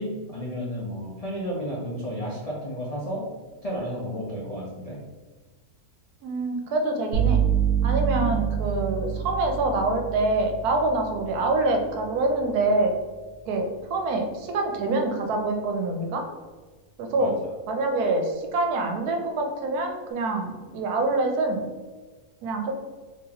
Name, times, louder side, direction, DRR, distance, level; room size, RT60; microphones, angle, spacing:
voice 1, 0.0-3.3 3.6-5.0 17.1-17.3, equal, 65° left, -5 dB, 0.3 m, -32 dB
voice 2, 6.2-7.4 7.8-12.9 13.5-16.2 17.0-17.4 17.7-21.6 22.4-22.7, right 2 dB, 80° right, 3 dB, 1.1 m, -25 dB
sound 1, 7.1-14.8, right 8 dB, 45° right, 0.8 m, -29 dB
3.9 x 2.8 x 2.8 m, 1.3 s
omnidirectional pair, 1.6 m